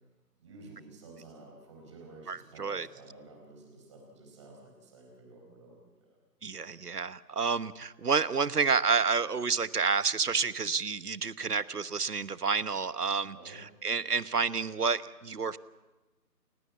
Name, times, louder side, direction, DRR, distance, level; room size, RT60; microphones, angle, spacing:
voice 1, 0.4-6.2 13.3-13.6, right 2 dB, 20° right, 1 dB, 4.3 m, -51 dB
voice 2, 2.3-2.9 6.4-15.6, right 5 dB, 65° right, 16 dB, 1.2 m, -29 dB
30.0 x 14.0 x 8.5 m, 1.1 s
figure-of-eight pair, 165°, 49 cm